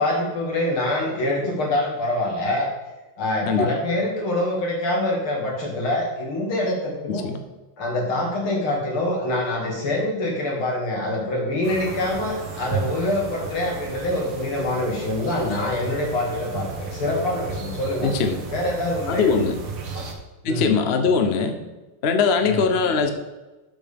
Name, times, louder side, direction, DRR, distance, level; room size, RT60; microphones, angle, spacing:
voice 1, 0.0-2.7 3.2-7.3 7.8-18.1 18.5-19.4 19.9-20.1 20.4-20.7 22.4-22.7, left 1 dB, 85° left, -2 dB, 3.3 m, -25 dB
voice 2, 7.1-7.4 18.0-18.4 19.1-19.6 20.4-21.6 22.0-23.1, left 5 dB, 50° left, 6 dB, 0.7 m, -21 dB
sound 1, 11.6-20.1, right 4 dB, 90° right, 2.2 m, -34 dB
7.8 x 7.0 x 5.3 m, 1.1 s
omnidirectional pair, 2.3 m